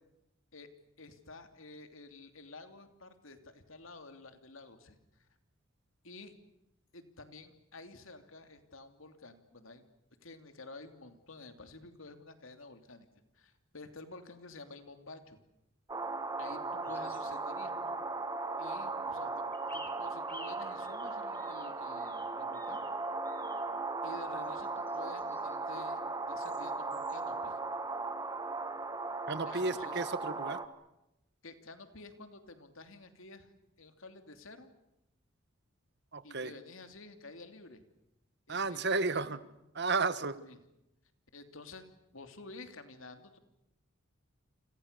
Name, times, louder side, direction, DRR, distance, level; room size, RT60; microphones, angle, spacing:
voice 1, 1.0-5.0 6.0-6.3 6.9-9.9 10.2-13.1 13.3-15.4 16.4-17.9 18.6-19.4 19.7-22.8 24.0-26.0 26.3-27.6 29.4-30.0 31.4-33.5 33.8-34.7 36.2-37.8 38.5-39.3 40.4-40.6 41.3-41.8 42.1-43.4, left 3 dB, 70° left, 8 dB, 2.9 m, -51 dB
sound 1, 15.9-30.7, right 3 dB, 20° right, 1.5 m, -37 dB
sound 2, 16.8-17.4 19.5-22.9 23.2-23.7 24.4-25.6 26.4-26.6 26.9-27.2, left 1 dB, 10° left, 4.4 m, -54 dB
voice 2, 29.3-30.6 36.1-36.5 38.5-39.4 39.7-40.4, right 3 dB, 55° right, 14 dB, 1.5 m, -32 dB
29.0 x 26.0 x 6.8 m, 0.88 s
head